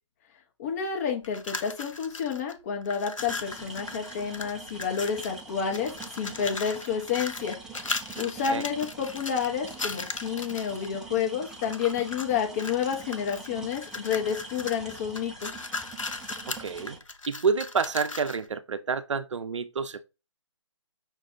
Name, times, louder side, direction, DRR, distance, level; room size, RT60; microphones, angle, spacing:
voice 1, 0.6-7.6 8.2-15.5, left 7 dB, 30° left, 1.0 m, -30 dB
sound 1, 1.2-2.5 2.8-5.4 5.7-10.9 11.4-12.3 12.6-18.5, left 3 dB, 85° left, 0.7 m, -37 dB
sound 2, 3.2-17.0, right 3 dB, ahead, 0.3 m, -44 dB
voice 2, 8.1-8.6 16.5-17.0 17.3-20.0, right 5 dB, 70° right, 0.5 m, -29 dB
5.8 x 2.3 x 3.7 m
figure-of-eight pair, 140°, 16 cm